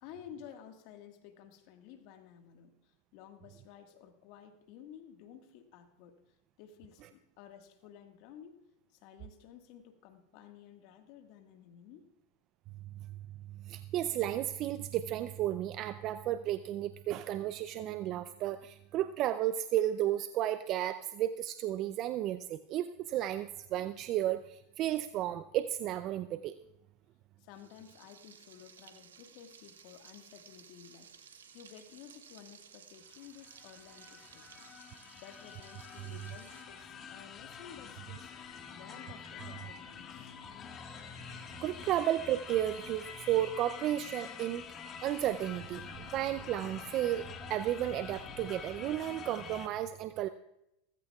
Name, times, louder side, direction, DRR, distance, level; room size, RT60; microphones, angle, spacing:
voice 1, 0.0-6.2 6.6-8.6 8.9-12.1 27.4-34.6 35.1-38.3 38.7-40.4, left 9 dB, 60° left, 6 dB, 1.6 m, -53 dB
voice 2, 13.6-26.6 41.3-44.6 45.0-50.3, right 12 dB, 45° right, 12 dB, 0.5 m, -33 dB
Frying (food), 27.5-36.6, right 7 dB, 90° right, 1.4 m, -57 dB
sound 1, 33.1-49.7, left 6 dB, 35° left, 1.6 m, -47 dB
17.0 x 15.0 x 2.4 m, 0.86 s
hypercardioid pair, 100°, 0 cm